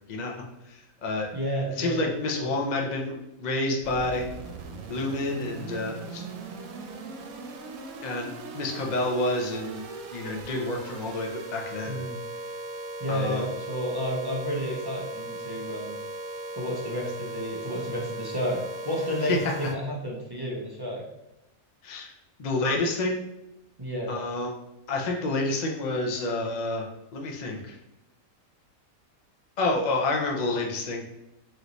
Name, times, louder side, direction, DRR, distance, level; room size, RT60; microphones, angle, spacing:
voice 1, 0.7-1.3 1.8-3.1 3.4-4.2 4.9-6.2 8.0-8.3 8.5-9.8 10.1-12.0 13.1-13.5 19.3-19.4 21.8-22.1 22.4-23.1 24.1-24.5 24.9-27.8 29.6-31.0, left 2 dB, 45° left, 0 dB, 0.6 m, -29 dB
voice 2, 1.3-2.5 11.8-12.2 13.0-15.9 16.6-21.0 23.8-24.2, equal, 30° right, -4 dB, 0.4 m, -31 dB
sound 1, 3.8-19.7, right 2 dB, 85° right, 1.1 m, -38 dB
3.2 x 3.0 x 3.9 m, 0.92 s
omnidirectional pair, 1.5 m